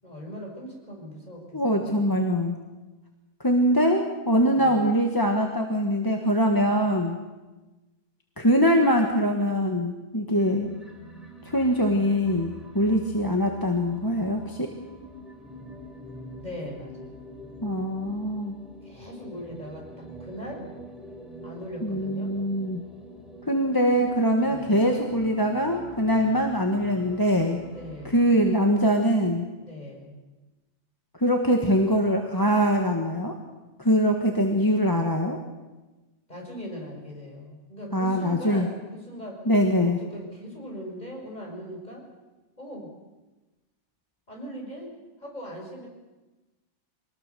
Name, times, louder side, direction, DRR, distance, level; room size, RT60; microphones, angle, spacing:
voice 1, 0.0-2.0 4.5-4.8 16.4-17.3 18.8-20.7 21.4-22.3 24.4-24.8 27.7-28.2 29.6-30.2 36.3-39.4 39.8-42.1 42.6-42.9 44.3-44.9 45.2-45.9, equal, 35° left, 0 dB, 6.1 m, -40 dB
voice 2, 1.5-2.6 3.4-7.2 8.4-10.7 11.4-14.7 17.6-18.5 21.8-22.8 23.5-27.6 28.0-29.5 31.2-33.3 33.8-35.4 37.9-38.7 39.5-40.0, equal, 20° left, 2 dB, 1.6 m, -23 dB
sound 1, 10.3-28.9, equal, ahead, 4.0 m, -45 dB
24.0 x 19.0 x 6.9 m, 1.1 s
omnidirectional pair, 1.2 m